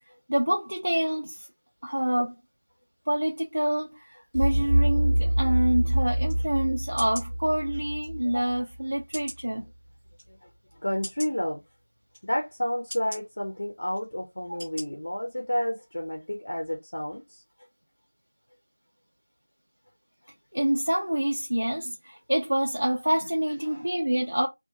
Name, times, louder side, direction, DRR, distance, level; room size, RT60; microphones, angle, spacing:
voice 1, 0.3-1.5 1.8-2.3 3.1-9.7 14.5-14.6 20.5-24.5, right 1 dB, 50° right, 0.6 m, -27 dB
sound 1, 4.3-9.2, right 1 dB, 65° right, 1.0 m, -26 dB
sound 2, 6.3-6.4 7.0-7.3 8.0-8.1 9.1-9.4 10.1-10.2 11.0-11.3 12.1-12.2 12.9-13.2 13.9-14.1 14.6-14.8 15.3-15.4, equal, 5° right, 0.8 m, -39 dB
voice 2, 10.8-11.6 12.3-17.4 23.6-23.9, equal, 30° left, 0.5 m, -30 dB
2.9 x 2.1 x 2.7 m
figure-of-eight pair, 180°, 0 cm